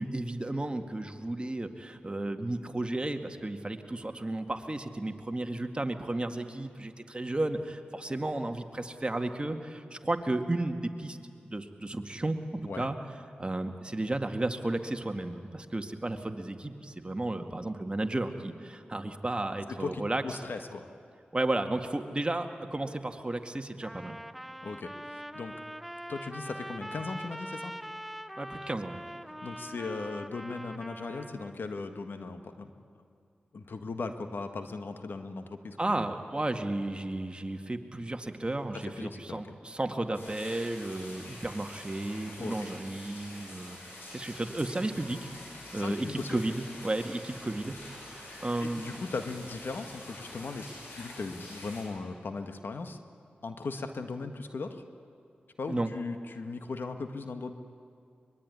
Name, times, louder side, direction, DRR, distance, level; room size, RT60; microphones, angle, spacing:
voice 1, 0.0-11.2 11.5-13.0 13.4-20.2 21.3-24.2 28.4-29.0 35.8-45.3 45.7-46.5 46.8-49.0 55.7-55.9, right 2 dB, 30° right, 5 dB, 2.1 m, -33 dB
voice 2, 19.7-20.9 24.6-25.5 26.1-27.7 29.4-32.7 33.5-36.1 38.8-39.4 42.4-42.7 45.7-46.4 48.6-50.7 51.0-53.0 53.4-54.8 55.6-57.5, left 3 dB, 70° left, 7 dB, 1.7 m, -38 dB
Trumpet, 23.8-31.6, equal, ahead, 0.9 m, -43 dB
sound 1, 40.1-51.8, left 1 dB, 85° left, 7.9 m, -46 dB
23.5 x 22.0 x 9.8 m, 2.4 s
cardioid pair, 40°, 4 cm